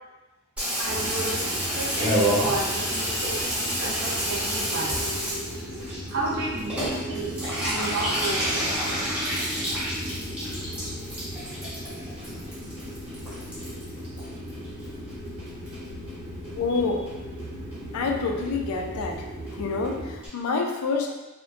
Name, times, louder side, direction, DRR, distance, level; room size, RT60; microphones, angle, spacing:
Water tap faucet / Bathtub (filling or washing), 0.6-15.1 15.4-16.1 16.4-16.5 16.7-16.8 17.1-17.4 17.7-17.8 18.1-18.2 18.4-18.5 18.7-18.8 19.1-19.2 19.5-19.6 19.8-19.9 20.2-20.3, equal, 5° right, 0.7 m, -29 dB
voice 1, 0.8-5.0 6.1-7.4 7.6-8.7, right 2 dB, 55° right, -4 dB, 0.5 m, -32 dB
sound 1, 0.8-20.2, equal, 85° right, 1.0 m, -37 dB
voice 2, 16.6-17.0 17.9-19.2 19.6-21.1, left 4 dB, 80° left, 2 dB, 0.4 m, -27 dB
2.5 x 2.1 x 2.4 m, 1.1 s
head